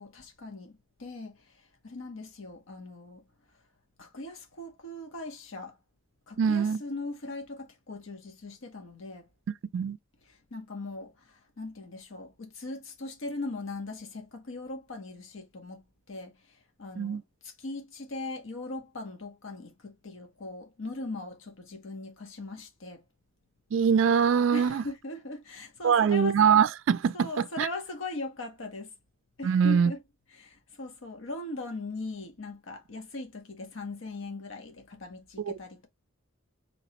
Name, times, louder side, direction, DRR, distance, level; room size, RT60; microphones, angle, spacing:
voice 1, 0.0-3.2 4.0-5.8 6.3-9.3 10.3-23.0 24.5-26.4 27.1-28.9 29.4-30.0 30.3-35.9, left 2 dB, 75° left, 0.9 m, -40 dB
voice 2, 6.4-6.8 9.7-10.0 17.0-17.2 23.7-24.8 25.8-27.7 29.4-29.9 35.4-35.5, right 7 dB, 65° right, 0.3 m, -23 dB
4.1 x 3.0 x 2.8 m
head